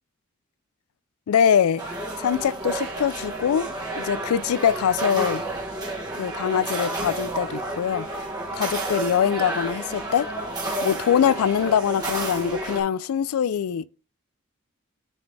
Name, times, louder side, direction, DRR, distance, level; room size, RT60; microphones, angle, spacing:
voice 1, 1.3-1.8 2.2-3.7 4.0-5.4 6.1-8.1 8.5-10.3 10.8-13.9, left 8 dB, 90° left, 0.3 m, -23 dB
sound 1, 1.8-12.8, right 2 dB, 20° right, 1.3 m, -31 dB
9.7 x 4.0 x 3.3 m
head